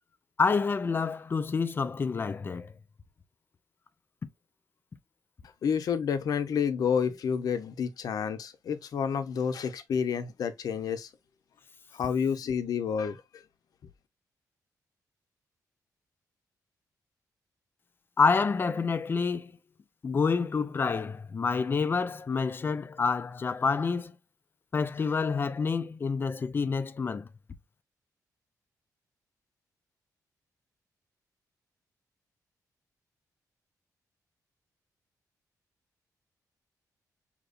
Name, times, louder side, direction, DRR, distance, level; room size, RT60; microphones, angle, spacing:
voice 1, 0.4-2.7 18.2-19.5 20.0-24.1 24.7-27.3, left 5 dB, 30° left, 0.5 m, -28 dB
voice 2, 5.6-11.1 11.9-13.4, left 7 dB, 65° left, 0.7 m, -29 dB
6.6 x 2.9 x 2.6 m
wide cardioid pair, 135°, 7 cm